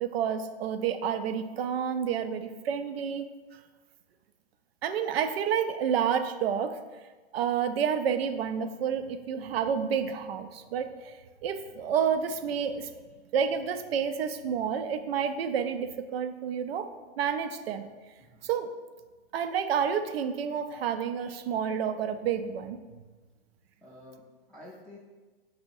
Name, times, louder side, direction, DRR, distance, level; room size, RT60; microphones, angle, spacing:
voice 1, 0.0-3.6 4.8-7.0 7.3-12.9 13.3-16.9 17.2-17.9 18.4-18.7 19.3-22.8, right 7 dB, 70° right, 9 dB, 0.5 m, -29 dB
voice 2, 23.8-25.0, left 1 dB, 5° left, -9 dB, 0.5 m, -50 dB
4.3 x 2.0 x 4.5 m, 1.3 s
hypercardioid pair, 115°, 31 cm